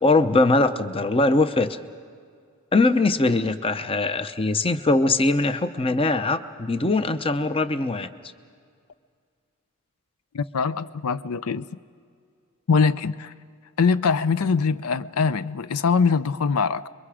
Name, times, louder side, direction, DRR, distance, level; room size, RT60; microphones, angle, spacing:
voice 1, 0.0-1.8 2.7-8.1, left 2 dB, 25° left, 0.7 m, -21 dB
voice 2, 10.3-11.7 12.7-13.3 13.8-16.9, left 5 dB, 85° left, 0.5 m, -22 dB
29.0 x 22.5 x 4.9 m
head